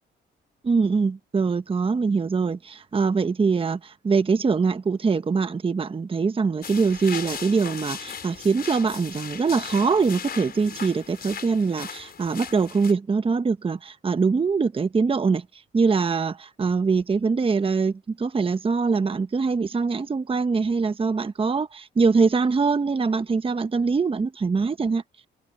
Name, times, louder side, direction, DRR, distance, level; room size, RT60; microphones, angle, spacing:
voice 1, 0.6-25.3, right 4 dB, 25° right, 1.0 m, -23 dB
sound 1, 6.6-12.9, left 7 dB, 50° left, 5.1 m, -37 dB
cardioid pair, 90°, 20 cm